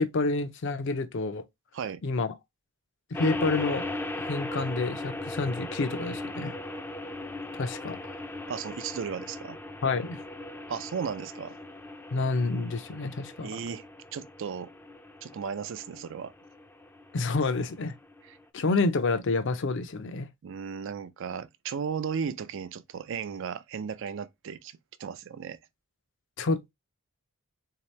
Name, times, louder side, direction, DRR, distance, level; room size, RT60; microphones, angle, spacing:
voice 1, 0.0-1.4 2.0-2.3 3.1-3.9 4.2-6.6 7.5-8.0 9.8-10.2 12.1-13.5 17.1-17.9 18.5-20.3 26.4-26.7, left 3 dB, 60° left, 0.5 m, -28 dB
sound 1, 3.1-18.4, left 2 dB, 10° left, 0.4 m, -38 dB
voice 2, 8.5-9.6 10.7-11.6 13.4-13.9 14.1-14.7 15.2-16.3 18.3-18.4 20.4-25.6, right 6 dB, 60° right, 0.4 m, -35 dB
3.8 x 2.9 x 3.1 m
head